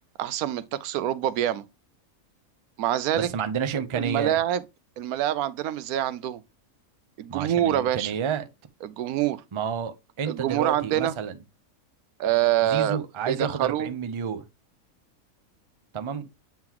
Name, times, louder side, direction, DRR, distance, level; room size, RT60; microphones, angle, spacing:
voice 1, 0.2-1.6 2.8-3.3 3.9-4.6 5.0-6.4 7.2-8.1 8.8-9.4 10.2-11.1 12.2-13.0 13.3-13.9, right 12 dB, 90° right, 1.1 m, -25 dB
voice 2, 3.1-4.4 7.3-8.4 9.5-11.4 12.6-14.4 15.9-16.3, right 7 dB, 40° right, 0.4 m, -30 dB
8.6 x 3.8 x 2.9 m
omnidirectional pair, 1.5 m